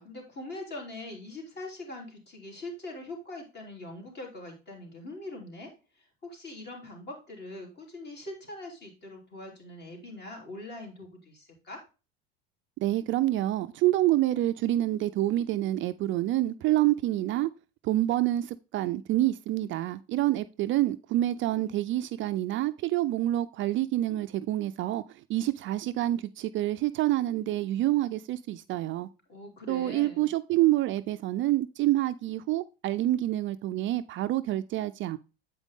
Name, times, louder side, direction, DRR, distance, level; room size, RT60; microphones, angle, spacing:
voice 1, 0.0-11.8 29.3-30.3, left 2 dB, 35° left, 3.2 m, -42 dB
voice 2, 12.8-17.5 17.8-29.1 29.7-35.2, right 15 dB, 45° right, 0.4 m, -27 dB
8.2 x 5.1 x 3.5 m
supercardioid pair, 105°, 29 cm